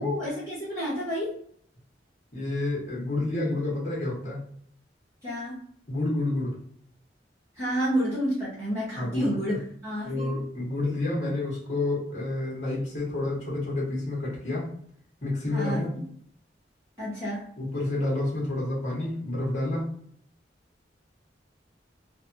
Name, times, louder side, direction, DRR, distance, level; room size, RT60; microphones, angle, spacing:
voice 1, 0.0-1.4 5.2-5.6 7.5-10.4 15.5-15.9 17.0-17.5, equal, 15° right, -9 dB, 1.1 m, -30 dB
voice 2, 2.3-4.4 5.9-6.6 9.0-9.6 10.0-14.7 15.2-16.0 17.6-19.9, left 2 dB, 40° left, -4 dB, 1.1 m, -29 dB
3.2 x 2.2 x 2.6 m, 0.62 s
head